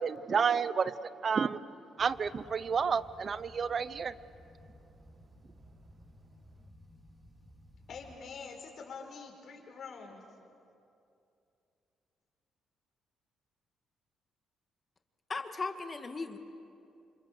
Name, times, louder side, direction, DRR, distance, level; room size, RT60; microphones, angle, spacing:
voice 1, 0.0-1.6 2.0-4.1, right 6 dB, 45° right, 16 dB, 0.8 m, -30 dB
sound 1, 2.0-8.2, equal, 15° right, 4.2 m, -56 dB
voice 2, 7.9-10.3, left 5 dB, 60° left, 1 dB, 5.0 m, -46 dB
voice 3, 15.3-16.4, left 4 dB, 30° left, 6 dB, 2.0 m, -37 dB
28.5 x 25.5 x 6.6 m, 2.6 s
cardioid pair, 90°, 0 cm